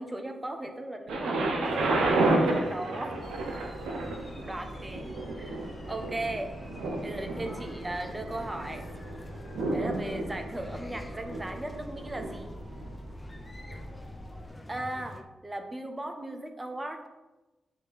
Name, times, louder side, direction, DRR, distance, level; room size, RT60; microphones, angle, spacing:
voice 1, 0.0-3.2 4.4-5.1 5.4-6.5 7.0-8.8 9.7-12.5 14.7-17.0, right 1 dB, 20° right, 5 dB, 1.0 m, -37 dB
Thunder, 1.1-12.9 13.7-13.8, right 2 dB, 85° right, 0.8 m, -32 dB
sound 1, 1.6-15.2, left 1 dB, 15° left, 0.7 m, -47 dB
sound 2, 3.2-14.5, equal, 45° left, 2.3 m, -46 dB
8.3 x 3.2 x 4.2 m, 1.1 s
supercardioid pair, 45°, 0 cm